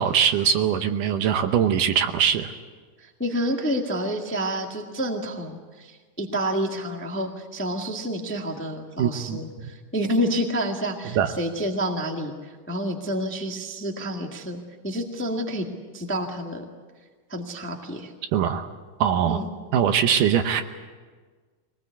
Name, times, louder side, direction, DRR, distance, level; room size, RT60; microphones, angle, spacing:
voice 1, 0.0-2.5 9.0-9.7 11.1-11.3 18.3-18.7 19.0-19.4 19.7-20.6, right 8 dB, 75° right, 7 dB, 2.4 m, -22 dB
voice 2, 3.0-12.3 12.7-14.6 14.8-15.6 15.9-16.6 17.3-18.1 19.3-19.5, equal, 10° left, 2 dB, 0.7 m, -29 dB
23.0 x 19.5 x 8.3 m, 1.5 s
omnidirectional pair, 3.9 m